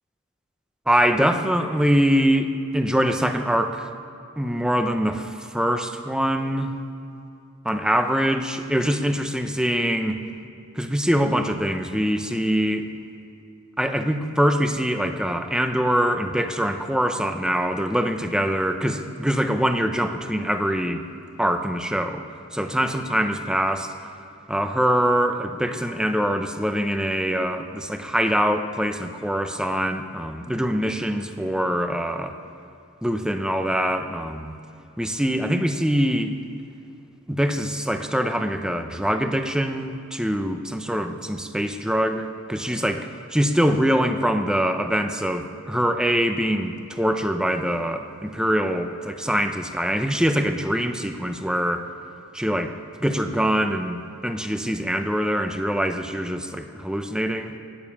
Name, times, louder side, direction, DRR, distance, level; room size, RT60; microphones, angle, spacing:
voice 1, 0.9-3.9 4.4-6.7 7.6-10.2 10.8-12.9 13.8-21.0 21.4-22.2 22.5-23.9 24.5-32.4 33.0-34.5 35.0-36.4 37.3-51.9 52.3-52.7 53.0-57.5, equal, 5° right, 7 dB, 0.6 m, -24 dB
19.0 x 7.1 x 7.1 m, 2.6 s
head